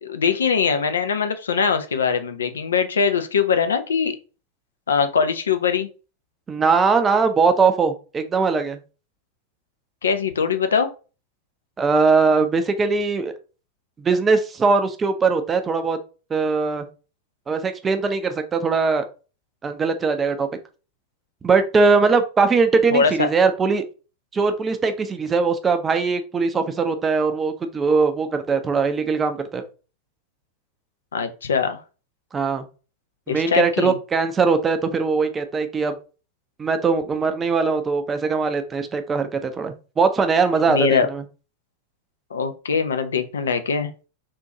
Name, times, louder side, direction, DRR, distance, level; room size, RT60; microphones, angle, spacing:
voice 1, 0.0-4.2 4.9-5.9 10.0-10.9 22.9-23.3 31.1-31.8 33.3-34.0 40.7-41.1 42.3-43.9, left 6 dB, 70° left, 9 dB, 0.4 m, -22 dB
voice 2, 6.5-8.8 11.8-13.3 14.0-16.0 16.3-16.9 17.5-19.0 19.6-20.5 21.4-23.8 24.3-29.6 32.3-32.6 33.3-35.9 36.6-41.2, right 4 dB, 20° right, 8 dB, 0.5 m, -20 dB
3.8 x 2.5 x 2.8 m, 0.34 s
figure-of-eight pair, 90°, 0 cm